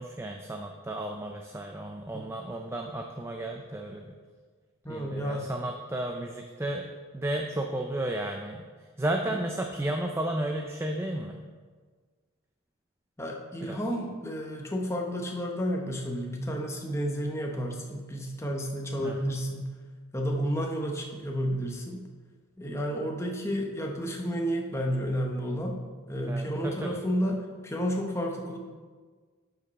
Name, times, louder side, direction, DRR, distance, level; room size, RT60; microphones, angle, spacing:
voice 1, 0.0-4.1 4.9-6.9 7.1-8.7 9.0-11.4 13.6-13.8 19.0-19.2 26.2-27.0, right 1 dB, 10° right, 3 dB, 0.4 m, -33 dB
voice 2, 4.8-5.5 9.3-9.4 13.2-19.7 20.1-22.0 22.6-25.8 26.1-28.6, equal, 10° left, 0 dB, 0.8 m, -31 dB
11.0 x 5.2 x 4.1 m, 1.5 s
head